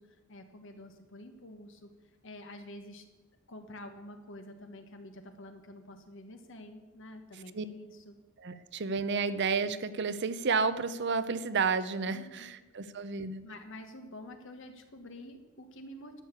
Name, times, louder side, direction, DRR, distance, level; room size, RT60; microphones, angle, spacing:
voice 1, 0.0-1.9 2.2-3.0 3.5-8.2 12.1-12.5 13.4-16.2, left 1 dB, 65° left, 6 dB, 1.5 m, -48 dB
voice 2, 8.4-13.4, right 5 dB, 55° right, 13 dB, 0.7 m, -31 dB
12.0 x 6.6 x 8.3 m, 1.1 s
head